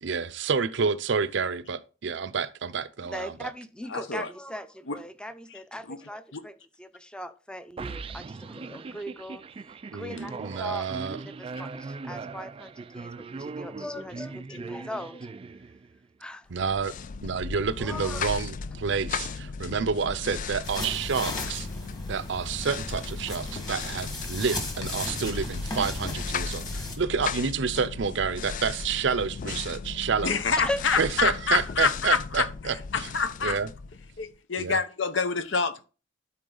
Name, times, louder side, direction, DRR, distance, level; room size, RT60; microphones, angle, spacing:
voice 1, 0.0-3.5 9.9-11.2 16.5-16.9 17.2-21.7 22.1-30.4 31.0-32.8 33.4-33.7 34.6-34.8, right 5 dB, 70° right, 0.6 m, -29 dB
voice 2, 3.0-9.4 9.9-15.4 16.2-16.5 17.8-18.3 30.6-31.1, left 1 dB, 5° left, 0.6 m, -39 dB
voice 3, 3.9-4.3 4.9-5.0 5.9-6.0 6.3-6.4 30.2-33.6 34.2-35.8, left 5 dB, 70° left, 0.8 m, -27 dB
sound 1, 7.8-16.1, right 4 dB, 30° right, 0.3 m, -40 dB
sound 2, 16.5-34.4, left 5 dB, 45° left, 0.4 m, -36 dB
sound 3, 20.6-27.0, left 1 dB, 20° left, 1.9 m, -37 dB
12.5 x 4.5 x 3.9 m
head